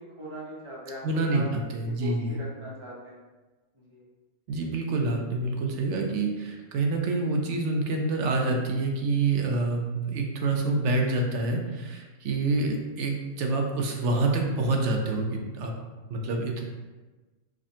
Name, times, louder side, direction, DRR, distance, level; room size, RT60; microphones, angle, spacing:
voice 1, 0.0-1.0 1.3-1.5 1.8-3.2 3.7-4.0, equal, 25° right, -6 dB, 0.8 m, -40 dB
voice 2, 1.0-2.4 4.5-15.7 16.1-16.6, right 3 dB, 70° right, 1 dB, 0.9 m, -27 dB
4.9 x 2.2 x 2.7 m, 1.2 s
omnidirectional pair, 1.3 m